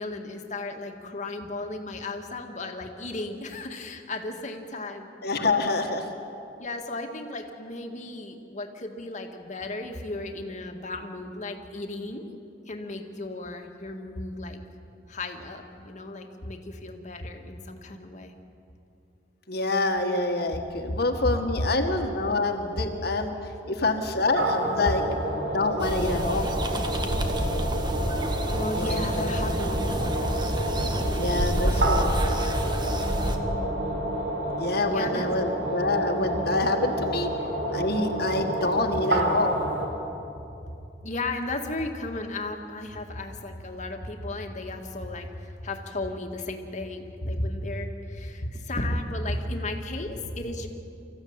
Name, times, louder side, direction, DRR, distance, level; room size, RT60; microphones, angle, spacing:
voice 1, 0.0-5.1 6.6-12.2 12.7-14.6 15.1-18.3 28.5-30.0 34.9-35.5 41.0-50.7, left 2 dB, 45° left, 4 dB, 1.9 m, -34 dB
voice 2, 5.2-6.1 19.5-23.3 23.7-25.0 25.5-26.5 28.7-29.4 31.1-32.1 34.6-37.3 37.7-39.6, left 2 dB, 60° left, 4 dB, 1.7 m, -26 dB
sound 1, 24.3-39.9, right 1 dB, 75° right, 3.8 m, -29 dB
sound 2, 25.8-33.4, equal, 25° right, 1.6 m, -28 dB
25.5 x 15.0 x 8.9 m, 2.7 s
head